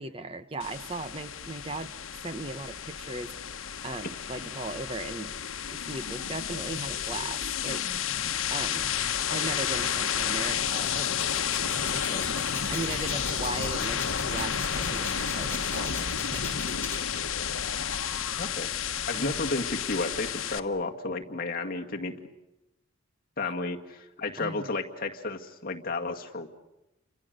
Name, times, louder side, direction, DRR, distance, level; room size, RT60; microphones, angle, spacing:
voice 1, 0.0-1.9 2.2-3.3 3.8-5.4 5.7-7.8 8.5-8.9 9.3-11.1 11.7-16.5 19.2-19.4 23.4-23.5 24.4-24.7, right 2 dB, 25° right, 11 dB, 0.9 m, -38 dB
sound 1, 0.6-20.6, left 8 dB, 80° left, 1.2 m, -31 dB
sound 2, 10.7-17.0, left 4 dB, 10° left, 6.1 m, -40 dB
voice 2, 18.4-18.7 19.1-22.2 23.4-26.5, left 3 dB, 45° left, 2 dB, 1.9 m, -32 dB
29.5 x 26.0 x 6.6 m, 0.96 s
head